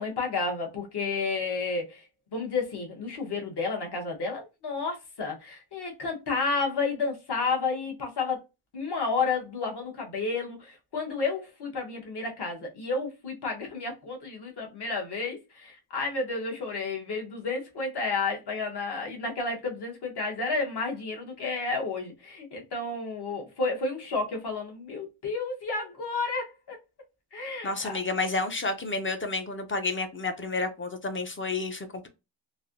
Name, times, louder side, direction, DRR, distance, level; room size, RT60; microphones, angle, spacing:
voice 1, 0.0-2.0 2.3-8.4 8.7-26.8 27.3-28.0, left 4 dB, 50° left, 1.1 m, -31 dB
voice 2, 27.6-32.1, left 3 dB, 30° left, 0.3 m, -30 dB
3.2 x 2.6 x 2.4 m
wide cardioid pair, 175°, 49 cm